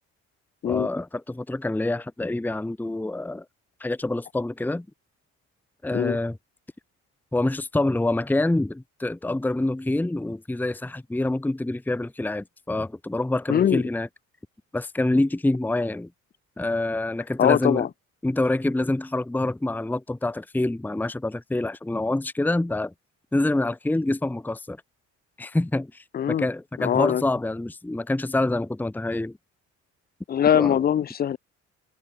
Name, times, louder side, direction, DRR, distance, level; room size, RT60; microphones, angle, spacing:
voice 1, 0.7-3.4 3.8-4.9 5.8-6.4 7.3-14.1 14.7-16.1 16.6-17.9 18.2-22.9 23.3-24.8 25.4-26.0 26.4-29.4 30.5-30.8, left 2 dB, 5° left, 0.9 m, -26 dB
voice 2, 13.5-13.8 17.4-17.9 26.1-26.5 26.8-27.2 30.3-31.4, left 9 dB, 35° left, 0.4 m, -22 dB
cardioid pair, 90°, 30 cm